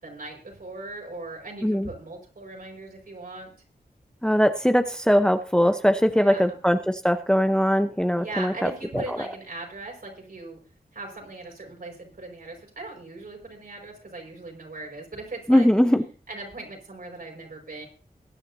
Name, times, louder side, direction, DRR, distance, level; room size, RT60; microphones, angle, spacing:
voice 1, 0.0-3.5 6.1-6.6 8.1-10.6 10.9-15.7 16.3-17.9, right 2 dB, 65° right, 0 dB, 5.5 m, -39 dB
voice 2, 4.2-8.7 15.5-16.0, equal, 5° left, 7 dB, 0.9 m, -21 dB
21.5 x 9.8 x 2.8 m, 0.36 s
wide cardioid pair, 95°, 16 cm